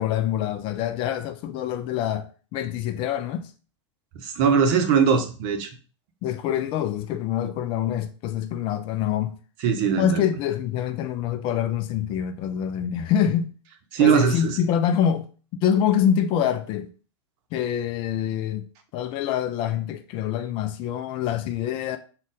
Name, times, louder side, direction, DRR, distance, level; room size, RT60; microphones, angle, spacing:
voice 1, 0.0-3.5 6.2-9.4 10.0-13.5 14.0-16.9 17.5-18.7 18.9-22.0, left 9 dB, 35° left, 0.4 m, -25 dB
voice 2, 4.2-5.7 9.6-10.2 13.9-14.6, right 7 dB, 45° right, 0.7 m, -20 dB
3.7 x 2.3 x 3.7 m
figure-of-eight pair, 100°, 15 cm